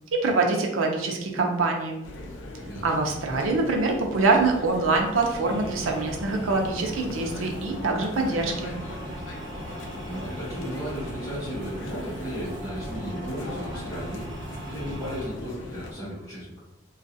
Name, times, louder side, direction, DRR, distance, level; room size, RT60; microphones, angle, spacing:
voice 1, 0.1-2.0 2.8-8.7, right 3 dB, 85° right, 2 dB, 0.6 m, -24 dB
sound 1, 2.0-15.9, left 1 dB, 70° left, 0.5 m, -40 dB
sound 2, 5.4-15.3, right 1 dB, 25° right, 0.4 m, -39 dB
voice 2, 10.1-16.7, equal, 20° left, -13 dB, 1.2 m, -35 dB
3.1 x 2.4 x 2.6 m, 0.86 s
head